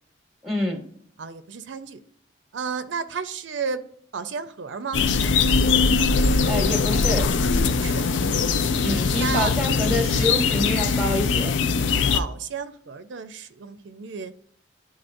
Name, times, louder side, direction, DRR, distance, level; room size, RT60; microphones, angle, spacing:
voice 1, 0.4-0.8 6.5-7.3 8.8-11.5, left 1 dB, ahead, 3 dB, 0.9 m, -27 dB
voice 2, 1.2-2.0 2.5-3.8 4.1-5.0 7.5-8.5 9.2-9.5 11.8-14.3, right 5 dB, 80° right, 11 dB, 0.5 m, -33 dB
sound 1, 4.9-12.2, left 4 dB, 80° left, 0.5 m, -21 dB
11.0 x 4.0 x 2.6 m, 0.63 s
head